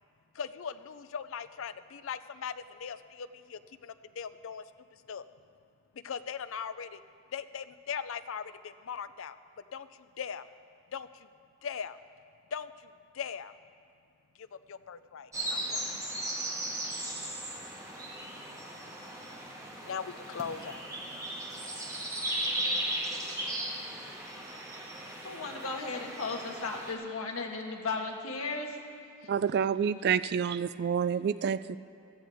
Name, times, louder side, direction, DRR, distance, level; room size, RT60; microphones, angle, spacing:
voice 1, 0.3-4.6 4.9-5.3 5.9-7.0 7.3-9.4 9.7-10.5 10.9-11.3 11.6-12.0 12.5-13.5 14.4-16.6 17.2-17.8 18.1-20.9 21.8-21.9 23.1-23.4, left 7 dB, 65° left, 13 dB, 0.5 m, -41 dB
sound 1, 15.3-26.9, right 1 dB, 15° right, 1.5 m, -37 dB
voice 2, 25.2-28.7, left 3 dB, 85° left, 1 dB, 1.5 m, -35 dB
voice 3, 29.3-31.8, right 7 dB, 50° right, 15 dB, 0.3 m, -28 dB
16.0 x 14.0 x 3.5 m, 2.4 s
head